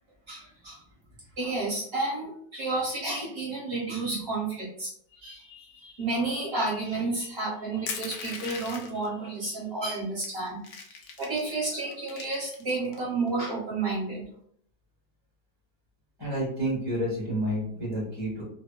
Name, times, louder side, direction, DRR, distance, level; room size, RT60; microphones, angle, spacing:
voice 1, 0.3-0.8 1.4-4.9 5.2-10.6 11.2-14.2, right 3 dB, 40° right, -6 dB, 1.2 m, -31 dB
Crushing, 7.9-9.1 9.8-9.9 10.2-11.5 11.9-13.0, left 5 dB, 85° left, 1.2 m, -38 dB
voice 2, 16.2-18.4, equal, 20° left, -7 dB, 0.7 m, -29 dB
3.3 x 2.1 x 2.2 m, 0.67 s
omnidirectional pair, 1.8 m